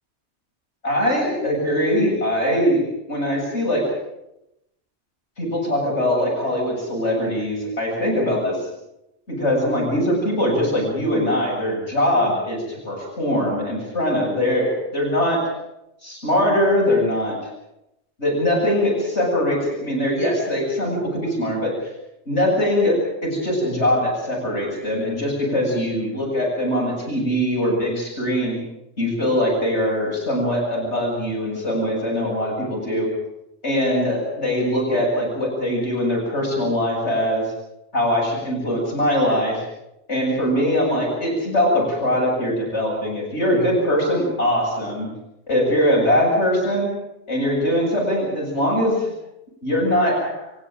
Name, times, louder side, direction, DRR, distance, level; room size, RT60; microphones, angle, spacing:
voice 1, 0.8-2.8 3.1-3.8 5.4-8.7 9.3-15.4 16.0-17.4 18.2-21.7 22.3-28.6 29.0-33.1 33.6-37.4 37.9-39.6 40.1-45.1 45.5-46.9 47.3-49.1 49.6-50.4, equal, 85° left, -3 dB, 8.1 m, -22 dB
27.5 x 15.5 x 8.9 m, 0.87 s
omnidirectional pair, 1.1 m